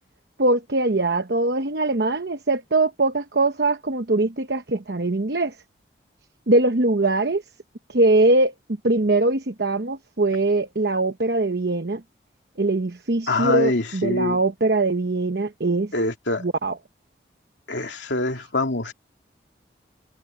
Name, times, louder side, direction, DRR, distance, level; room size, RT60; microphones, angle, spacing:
voice 1, 0.4-5.6 6.5-7.4 7.9-8.5 8.8-12.0 12.6-15.9 16.4-16.8, right 2 dB, 60° right, 1.0 m, -22 dB
voice 2, 13.3-14.4 15.9-16.4 17.7-18.9, left 2 dB, 80° left, 2.6 m, -24 dB
head